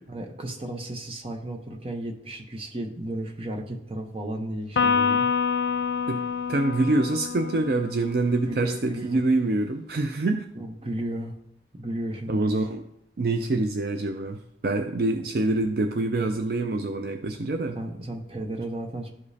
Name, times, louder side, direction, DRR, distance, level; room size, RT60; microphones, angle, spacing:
voice 1, 0.1-5.3 8.4-9.2 10.5-11.3 11.8-12.5 17.7-19.1, right 1 dB, 30° right, 3 dB, 0.8 m, -34 dB
Electric guitar, 4.8-8.3, left 6 dB, 80° left, 0.4 m, -26 dB
voice 2, 6.5-10.4 12.3-12.8 13.2-14.4 14.6-17.8, right 2 dB, 55° right, 6 dB, 0.4 m, -25 dB
12.5 x 5.0 x 2.8 m, 0.77 s
head